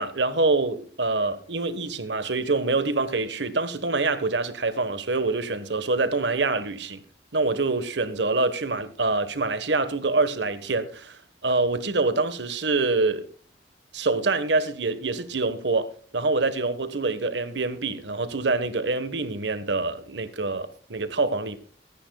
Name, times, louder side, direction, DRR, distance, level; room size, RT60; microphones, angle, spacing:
voice 1, 0.0-7.0 7.3-13.3 13.9-21.6, right 3 dB, 85° right, 1.3 m, -25 dB
24.0 x 10.0 x 2.3 m
head